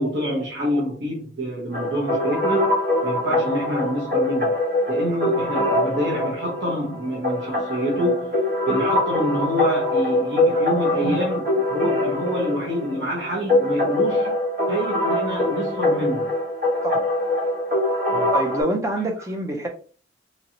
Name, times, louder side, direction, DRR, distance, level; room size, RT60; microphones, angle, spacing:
voice 1, 0.0-4.5 4.9-8.3 8.7-14.4 14.7-16.3 18.1-18.3, equal, 75° right, 1.0 m, -27 dB
sound 1, 1.7-18.6, left 1 dB, 45° right, 1.2 m, -23 dB
voice 2, 18.3-19.7, right 1 dB, 15° right, 0.4 m, -26 dB
3.1 x 2.7 x 2.8 m
head